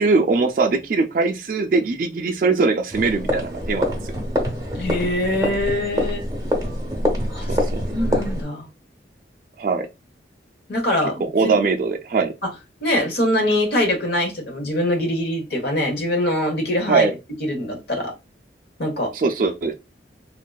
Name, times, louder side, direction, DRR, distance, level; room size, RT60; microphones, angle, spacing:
voice 1, 0.0-4.1 7.5-7.8 9.6-9.9 11.2-12.3 16.9-17.1 19.1-19.7, right 4 dB, 50° right, 0.3 m, -21 dB
sound 1, 2.9-8.4, left 1 dB, 20° right, 0.7 m, -25 dB
voice 2, 4.8-6.2 7.3-7.6 7.9-8.7 10.7-11.5 12.4-12.5 12.8-17.1 17.4-18.1 18.8-19.1, left 1 dB, 65° left, 0.9 m, -23 dB
3.6 x 2.4 x 2.3 m
head